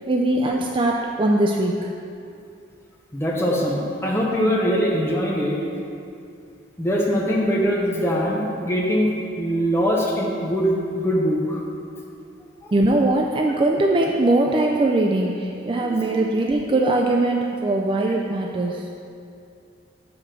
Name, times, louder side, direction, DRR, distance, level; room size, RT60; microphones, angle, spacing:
voice 1, 0.1-1.9 12.7-18.9, right 2 dB, 25° right, 0 dB, 0.3 m, -21 dB
voice 2, 3.1-5.6 6.8-11.6 12.6-12.7 15.8-16.3, equal, 15° left, -3 dB, 0.8 m, -22 dB
5.9 x 5.0 x 5.8 m, 2.5 s
head